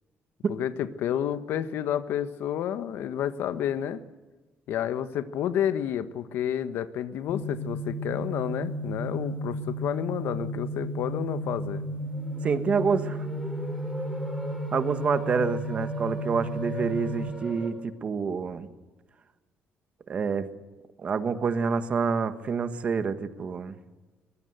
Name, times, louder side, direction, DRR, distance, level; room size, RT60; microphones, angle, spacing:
voice 1, 0.5-4.0 4.7-11.8, left 10 dB, 70° left, 12 dB, 1.4 m, -30 dB
sound 1, 7.3-17.3, equal, 50° left, 1.6 m, -33 dB
sound 2, 11.6-17.7, equal, ahead, 5.1 m, -40 dB
voice 2, 12.4-13.3 14.7-18.7 20.1-20.5 21.0-23.7, right 5 dB, 30° right, 11 dB, 1.4 m, -27 dB
22.5 x 21.5 x 8.0 m, 1.2 s
cardioid pair, 180°, 4 cm